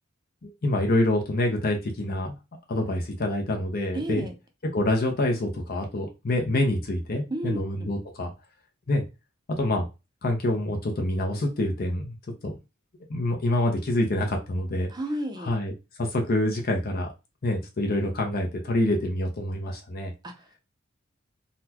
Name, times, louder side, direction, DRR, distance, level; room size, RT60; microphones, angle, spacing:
voice 1, 0.4-2.3 2.7-4.2 4.7-8.3 8.9-9.0 9.6-9.8 10.2-12.2 12.4-12.6 13.1-14.9 15.4-15.7 16.0-17.1 17.4-20.1, left 1 dB, 50° left, 0.7 m, -26 dB
voice 2, 3.9-4.4 7.3-7.9 14.9-15.5 20.2-20.6, right 1 dB, 20° right, 0.5 m, -32 dB
4.0 x 2.2 x 2.8 m
head